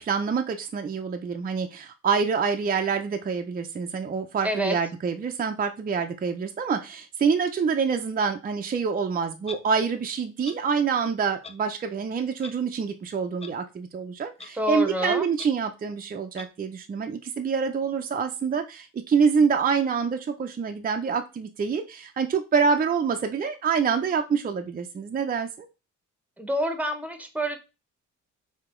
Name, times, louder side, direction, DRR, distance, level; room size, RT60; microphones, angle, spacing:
voice 1, 0.0-25.7, right 6 dB, 30° right, 5 dB, 0.6 m, -26 dB
voice 2, 4.4-4.8 14.5-15.2 26.4-27.6, equal, 5° right, 6 dB, 1.0 m, -27 dB
Clock, 9.4-9.6 10.4-10.6 11.4-11.5 12.4-12.5 13.4-13.5 14.4-14.5 15.4-15.5 16.4-16.5, left 4 dB, 20° left, 0.5 m, -39 dB
4.7 x 2.9 x 3.7 m, 0.28 s
cardioid pair, 90°, 30 cm